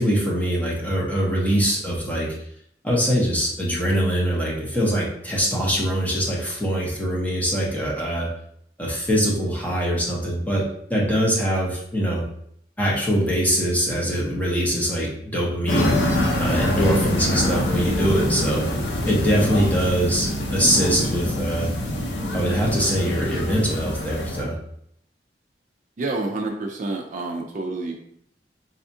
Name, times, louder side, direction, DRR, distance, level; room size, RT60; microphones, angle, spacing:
voice 1, 0.0-2.3 2.8-8.3 8.8-12.2 12.8-16.1 16.4-18.6 19.1-21.7 22.3-24.5, equal, 10° left, -4 dB, 0.8 m, -23 dB
sound 1, 15.7-24.4, left 1 dB, 80° left, 0.7 m, -25 dB
voice 2, 26.0-28.0, right 2 dB, 45° right, 2 dB, 0.4 m, -28 dB
4.1 x 2.3 x 2.6 m, 0.71 s
head